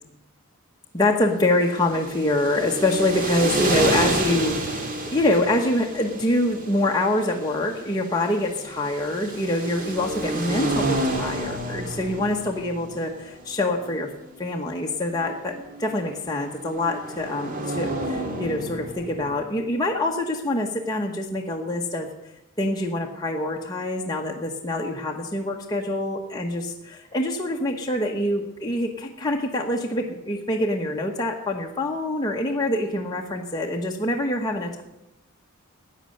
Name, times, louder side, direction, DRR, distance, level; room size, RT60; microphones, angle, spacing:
voice 1, 0.9-14.1 14.4-22.1 22.6-34.8, left 1 dB, 20° left, 0 dB, 1.0 m, -25 dB
sound 1, 1.5-19.4, right 2 dB, 40° right, 1.8 m, -30 dB
14.0 x 9.1 x 6.5 m, 0.92 s
head